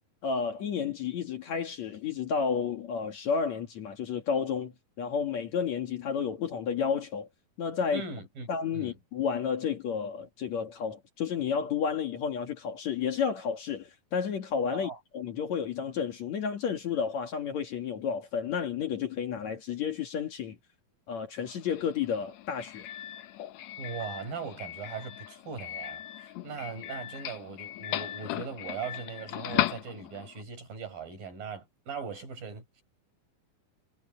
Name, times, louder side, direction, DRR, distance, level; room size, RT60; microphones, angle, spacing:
voice 1, 0.2-7.3 7.6-8.0 8.5-20.6 21.1-22.9, left 6 dB, 55° left, 2.8 m, -31 dB
voice 2, 7.9-8.5 8.7-9.0 14.7-15.0 23.8-32.8, right 5 dB, 70° right, 8.9 m, -40 dB
Doorbell, 21.4-30.4, left 13 dB, 80° left, 1.5 m, -37 dB
omnidirectional pair, 4.2 m